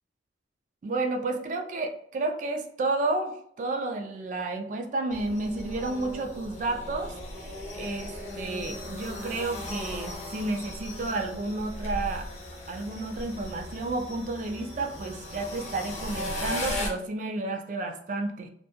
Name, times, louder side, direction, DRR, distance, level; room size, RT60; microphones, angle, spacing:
voice 1, 0.8-7.1 7.8-12.3 12.7-18.5, right 2 dB, 45° right, 5 dB, 0.3 m, -31 dB
sound 1, 5.1-16.9, left 1 dB, 40° left, 0.7 m, -37 dB
2.2 x 2.1 x 2.8 m, 0.67 s
head